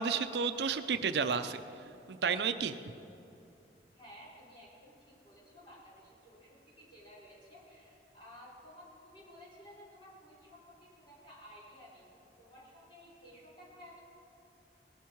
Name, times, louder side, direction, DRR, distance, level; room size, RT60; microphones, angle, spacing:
voice 1, 0.0-1.6 2.1-2.8, right 5 dB, 65° right, 9 dB, 0.5 m, -31 dB
voice 2, 3.9-12.1 12.4-14.0, equal, 30° left, -6 dB, 4.2 m, -55 dB
18.5 x 12.0 x 4.6 m, 2.7 s
head